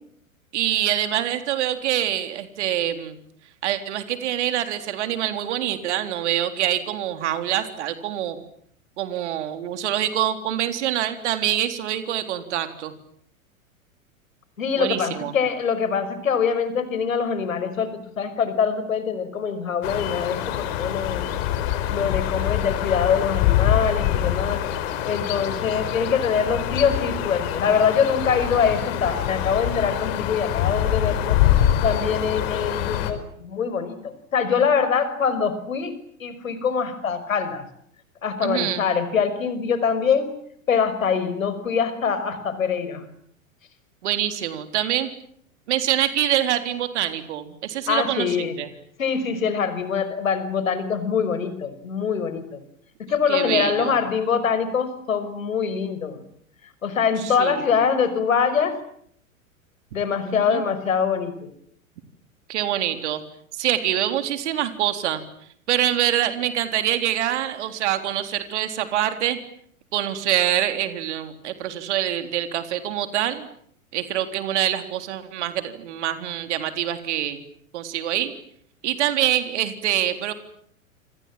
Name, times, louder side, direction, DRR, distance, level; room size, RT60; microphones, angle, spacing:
voice 1, 0.5-3.2 3.6-8.4 9.0-12.9 14.8-15.3 38.4-38.8 44.0-45.1 45.7-48.7 53.3-54.0 57.2-57.6 60.3-60.6 62.5-63.2 63.5-65.2 65.7-69.4 69.9-73.5 73.9-77.4 77.7-78.3 78.8-80.3, right 11 dB, 55° right, 8 dB, 3.8 m, -25 dB
voice 2, 14.6-17.9 18.2-21.3 21.9-24.6 25.1-31.4 31.8-35.9 36.2-37.6 38.2-40.3 40.7-43.0 47.9-48.6 49.0-52.4 53.0-56.2 56.8-58.7 59.9-61.5, left 6 dB, 70° left, 12 dB, 5.7 m, -24 dB
sound 1, 19.8-33.1, left 11 dB, 45° left, 5.0 m, -24 dB
28.0 x 27.0 x 7.6 m, 0.67 s
figure-of-eight pair, 100°, 42 cm